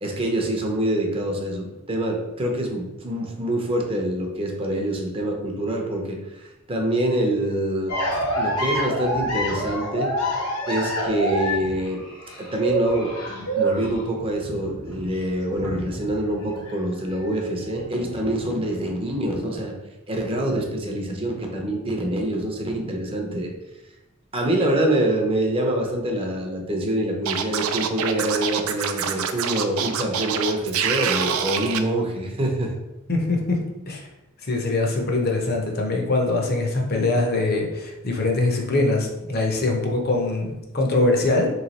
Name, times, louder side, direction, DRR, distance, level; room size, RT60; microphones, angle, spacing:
voice 1, 0.0-10.1 10.7-12.1 12.4-19.7 20.1-23.5 24.3-32.7, right 1 dB, 25° right, 1 dB, 0.6 m, -25 dB
sound 1, 7.9-16.7 17.0-18.3, equal, 85° left, 1.2 m, -27 dB
Scratching (performance technique), 27.3-31.8, right 8 dB, 75° right, 0.4 m, -26 dB
voice 2, 33.1-33.6 33.9-34.0 34.4-40.5 40.7-41.5, left 2 dB, 45° left, 1 dB, 0.7 m, -22 dB
3.2 x 3.2 x 4.0 m, 0.99 s
head